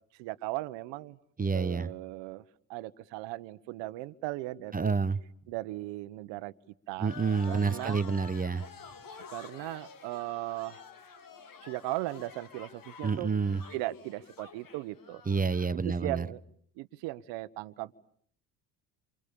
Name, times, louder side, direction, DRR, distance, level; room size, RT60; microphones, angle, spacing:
voice 1, 0.2-1.2 1.5-2.4 2.7-5.0 5.5-6.5 6.9-7.1 7.5-8.0 9.3-10.8 11.6-13.3 13.7-15.2 15.7-16.4 16.8-17.9, right 18 dB, 75° right, 13 dB, 1.4 m, -37 dB
voice 2, 1.4-1.9 4.7-5.2 7.0-8.6 13.0-13.6 15.3-16.3, right 5 dB, 20° right, 14 dB, 1.1 m, -28 dB
sound 1, 7.0-15.8, left 5 dB, 50° left, 2.9 m, -49 dB
28.5 x 28.5 x 7.1 m, 0.63 s
supercardioid pair, 75°, 44 cm